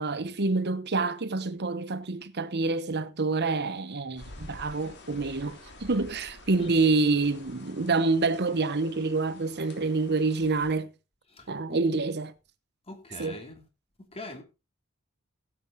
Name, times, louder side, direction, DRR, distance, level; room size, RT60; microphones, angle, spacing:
voice 1, 0.0-10.9 11.5-12.3 13.2-13.4, right 3 dB, 50° right, 1.0 m, -27 dB
sound 1, 4.2-10.7, left 2 dB, 50° left, 3.2 m, -49 dB
voice 2, 11.3-11.8 12.9-13.6 14.1-14.4, left 2 dB, 30° left, 2.9 m, -42 dB
16.0 x 8.0 x 4.1 m
head